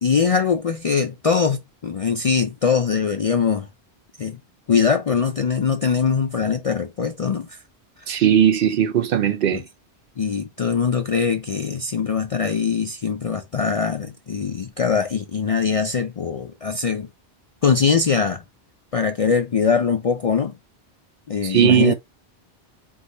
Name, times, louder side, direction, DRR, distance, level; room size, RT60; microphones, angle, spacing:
voice 1, 0.0-3.7 4.2-4.4 4.7-7.6 8.0-8.2 9.5-9.6 10.2-17.1 17.6-18.4 18.9-20.5 21.3-21.9, left 6 dB, 50° left, 0.4 m, -22 dB
voice 2, 8.1-9.6 21.4-21.9, right 9 dB, 65° right, 0.7 m, -18 dB
4.7 x 2.2 x 3.9 m
omnidirectional pair, 1.1 m